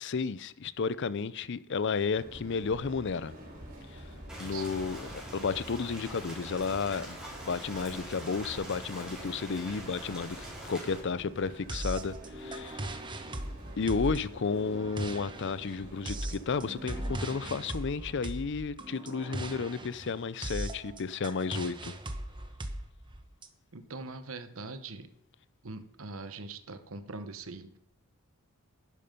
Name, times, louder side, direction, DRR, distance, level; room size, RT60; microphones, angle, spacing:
voice 1, 0.0-3.3 3.9-4.0 4.4-7.2 7.4-10.4 10.6-12.9 13.8-22.0, left 5 dB, 55° left, 0.5 m, -32 dB
sound 1, 2.1-17.1, right 1 dB, 40° right, 4.5 m, -48 dB
Rain, 4.3-11.0, right 1 dB, 5° right, 4.3 m, -44 dB
sound 2, 11.7-23.5, right 1 dB, 20° right, 1.0 m, -39 dB
voice 2, 23.7-25.1 25.6-27.8, right 3 dB, 65° right, 1.0 m, -42 dB
11.0 x 11.0 x 5.3 m
head